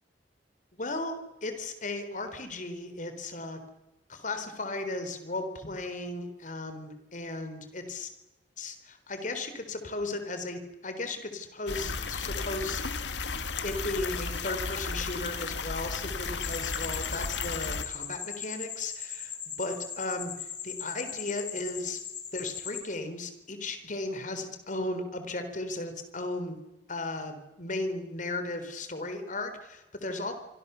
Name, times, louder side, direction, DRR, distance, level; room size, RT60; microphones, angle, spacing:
voice 1, 0.7-3.6 4.1-8.1 8.6-12.8 13.6-22.0 22.3-26.6 26.9-30.3, left 2 dB, 45° left, 8 dB, 3.9 m, -36 dB
sound 1, 11.7-17.8, left 4 dB, 90° left, 1.8 m, -34 dB
sound 2, 16.4-22.8, left 8 dB, 75° left, 4.0 m, -39 dB
26.0 x 25.5 x 7.0 m, 1.0 s
head